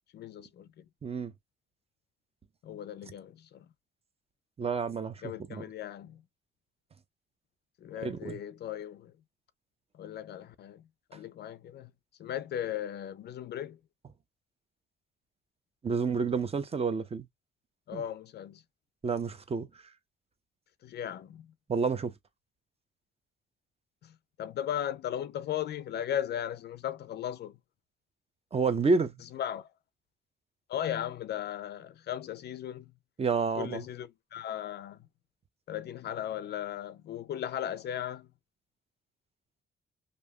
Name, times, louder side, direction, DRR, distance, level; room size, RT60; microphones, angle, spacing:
voice 1, 0.1-0.8 2.6-3.7 5.2-6.2 7.8-9.1 10.0-10.8 11.1-11.9 12.2-13.8 17.9-18.6 20.8-21.5 24.0-24.1 24.4-27.6 29.3-29.7 30.7-32.9 33.6-35.0 35.7-38.3, left 10 dB, 60° left, 0.4 m, -37 dB
voice 2, 1.0-1.3 4.6-5.6 8.0-8.4 15.8-17.3 17.9-18.0 19.0-19.7 21.7-22.1 28.5-29.1 33.2-33.8, right 4 dB, 30° right, 0.7 m, -29 dB
3.3 x 2.6 x 2.2 m
cardioid pair, 90°, 20 cm